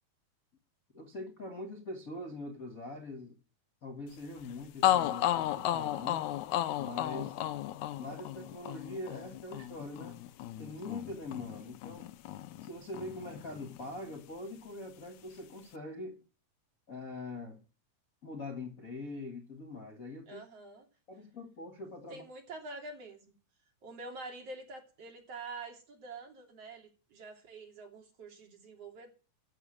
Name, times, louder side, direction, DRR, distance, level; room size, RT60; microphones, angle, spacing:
voice 1, 0.9-3.4 3.8-6.2 6.8-7.4 8.0-10.2 10.6-12.1 12.6-16.2 16.9-17.6 18.2-20.4 21.1-22.2, left 2 dB, 50° left, 1.0 m, -43 dB
sound 1, 4.4-4.5 4.8-12.7 12.9-14.1, left 12 dB, 80° left, 1.7 m, -34 dB
voice 2, 20.3-20.9 22.1-23.4 23.8-29.1, right 3 dB, 45° right, 3.7 m, -46 dB
13.5 x 7.3 x 6.4 m
omnidirectional pair, 4.3 m